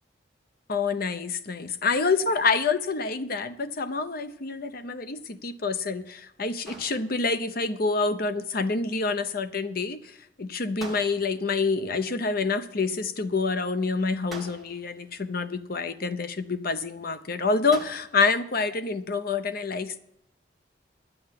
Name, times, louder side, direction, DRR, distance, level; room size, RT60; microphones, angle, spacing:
voice 1, 0.7-20.0, left 4 dB, 55° left, 11 dB, 0.8 m, -27 dB
sound 1, 6.6-7.5 10.8-11.6 14.3-15.0 17.7-18.4, right 2 dB, ahead, 1.7 m, -44 dB
11.5 x 7.8 x 7.6 m, 0.76 s
head